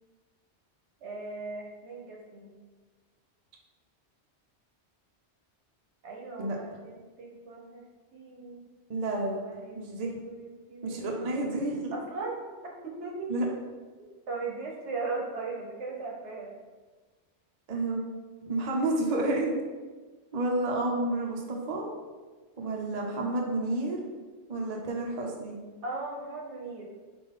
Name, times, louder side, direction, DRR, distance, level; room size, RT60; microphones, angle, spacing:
voice 1, 1.0-2.5 6.0-7.8 8.1-8.6 9.4-11.3 11.9-12.5 12.8-13.5 14.3-16.5 25.8-26.8, right 3 dB, 85° right, -1 dB, 1.2 m, -38 dB
voice 2, 8.9-9.4 9.7-10.1 10.8-12.0 13.3-13.5 17.7-18.0 18.4-19.6 20.3-21.9 22.6-24.0 24.5-25.6, right 2 dB, 45° right, -1 dB, 0.7 m, -30 dB
5.1 x 2.5 x 3.6 m, 1.3 s
omnidirectional pair, 1.2 m